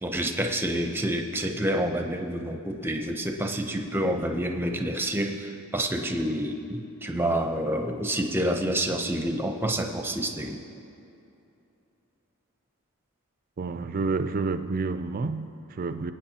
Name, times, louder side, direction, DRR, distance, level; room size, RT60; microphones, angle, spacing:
voice 1, 0.0-10.6, right 1 dB, 10° right, 3 dB, 0.7 m, -28 dB
voice 2, 13.6-16.1, right 4 dB, 40° right, 10 dB, 0.4 m, -29 dB
22.5 x 8.9 x 2.9 m, 2.8 s
head